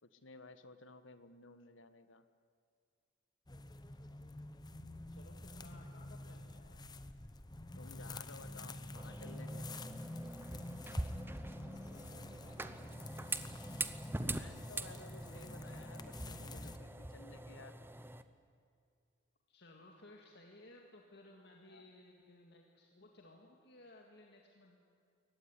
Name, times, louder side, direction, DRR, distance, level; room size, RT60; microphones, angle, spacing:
voice 1, 0.0-2.3 7.7-9.7 14.2-17.8 21.7-21.9, left 3 dB, 85° left, 11 dB, 1.4 m, -55 dB
sound 1, 3.5-16.8, left 2 dB, 20° left, 0.9 m, -48 dB
voice 2, 5.1-7.0 11.8-13.4 19.5-24.8, left 1 dB, 60° left, 1 dB, 2.0 m, -59 dB
sound 2, 9.0-18.2, right 2 dB, 10° right, 0.8 m, -44 dB
23.0 x 18.5 x 9.8 m, 2.3 s
head